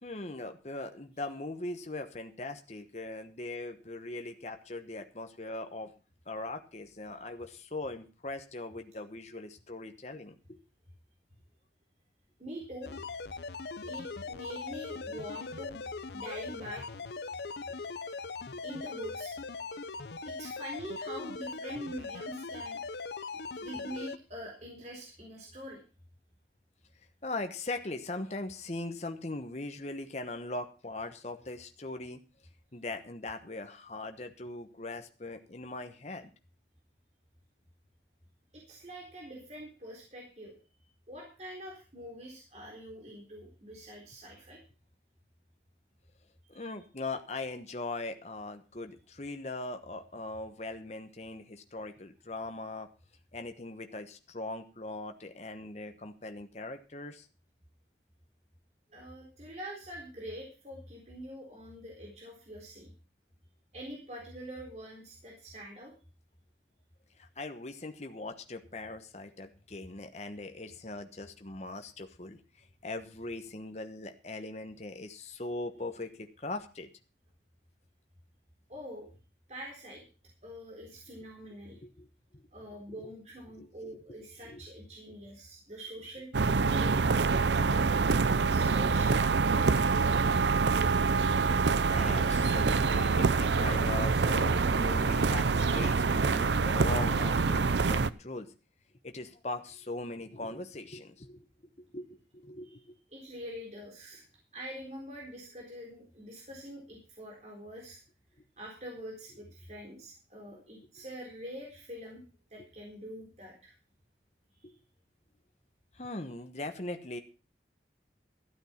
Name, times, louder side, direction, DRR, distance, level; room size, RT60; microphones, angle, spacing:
voice 1, 0.0-5.9 6.3-10.6 27.2-32.2 32.7-36.3 46.5-52.9 53.3-57.3 67.2-76.9 81.8-82.1 83.6-84.2 84.4-84.6 91.9-98.5 99.0-101.5 101.8-102.1 102.3-102.9 110.5-110.6 114.6-114.7 115.9-117.2, left 2 dB, 40° left, 6 dB, 1.1 m, -40 dB
voice 2, 12.4-12.9 13.8-15.8 16.1-16.9 18.6-19.3 20.3-22.8 23.6-25.8 38.5-40.6 41.1-44.6 46.5-46.7 58.9-62.9 63.7-65.9 78.7-79.1 79.5-80.0 80.4-81.8 82.5-88.0 88.4-90.4 102.6-102.7 103.1-104.2 104.5-108.0 108.6-112.2 112.5-113.7 114.6-114.7, equal, 40° right, -1 dB, 3.9 m, -45 dB
sound 1, 12.8-24.2, left 4 dB, 70° left, 0.7 m, -40 dB
sound 2, 86.3-98.1, right 4 dB, 85° right, 0.6 m, -26 dB
13.0 x 9.0 x 5.7 m, 0.34 s
head